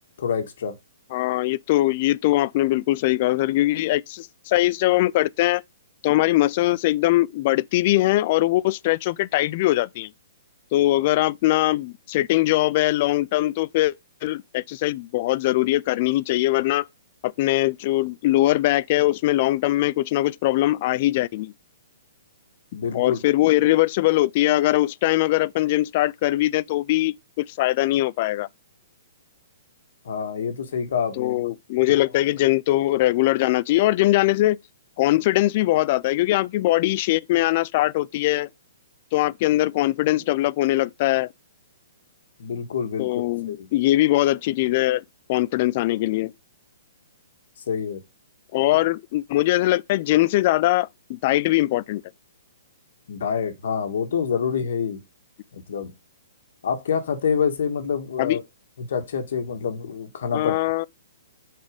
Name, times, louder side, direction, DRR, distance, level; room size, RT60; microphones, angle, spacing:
voice 1, 0.2-0.7 22.7-23.2 30.0-31.4 31.9-32.0 42.4-43.7 47.7-48.0 48.8-48.9 53.1-55.0 55.5-55.9 56.6-58.4 58.8-60.5, left 6 dB, 65° left, 1.6 m, -27 dB
voice 2, 1.1-5.6 6.0-10.1 10.7-13.9 14.2-16.9 17.2-21.5 22.9-28.5 31.2-34.6 35.0-38.5 39.1-41.3 43.0-45.0 45.3-46.3 48.5-52.0 58.2-58.4 60.3-60.9, left 16 dB, 40° left, 0.3 m, -21 dB
6.8 x 4.2 x 5.1 m
hypercardioid pair, 150°, 0 cm